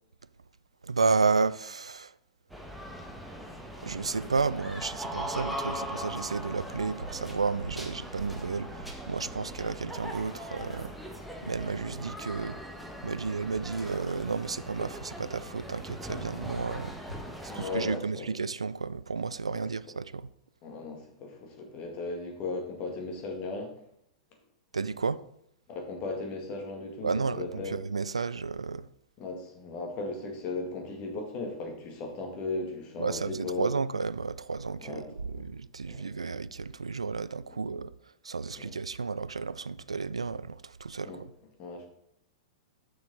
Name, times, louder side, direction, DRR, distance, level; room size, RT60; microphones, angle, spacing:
voice 1, 0.8-2.1 3.8-10.9 11.4-12.6 13.0-17.0 17.4-20.3 24.7-25.2 27.0-28.9 33.0-35.0 35.4-37.9 38.2-41.3, right 4 dB, 80° right, 0.3 m, -32 dB
sound 1, 2.5-18.0, equal, 5° right, 1.3 m, -40 dB
voice 2, 17.5-18.3 19.5-19.6 20.6-23.7 25.7-27.8 29.2-33.7 34.8-35.5 35.9-36.1 37.5-37.7 38.5-38.8 41.0-41.2 41.6-41.9, left 3 dB, 35° left, 1.8 m, -37 dB
6.9 x 6.3 x 4.1 m
figure-of-eight pair, 100°, 3 cm